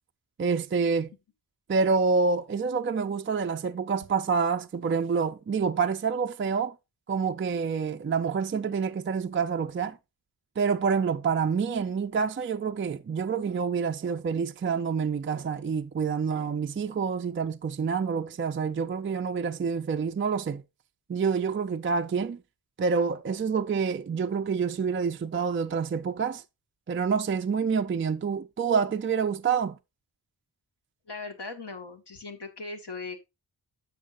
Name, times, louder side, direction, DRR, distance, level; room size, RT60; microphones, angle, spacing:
voice 1, 0.4-1.1 1.7-6.8 7.1-10.0 10.6-20.6 21.1-22.4 22.8-26.4 26.9-29.8, right 5 dB, 30° right, 0.4 m, -27 dB
voice 2, 31.1-33.2, left 3 dB, 60° left, 1.6 m, -39 dB
10.0 x 6.6 x 2.4 m
wide cardioid pair, 75°, 46 cm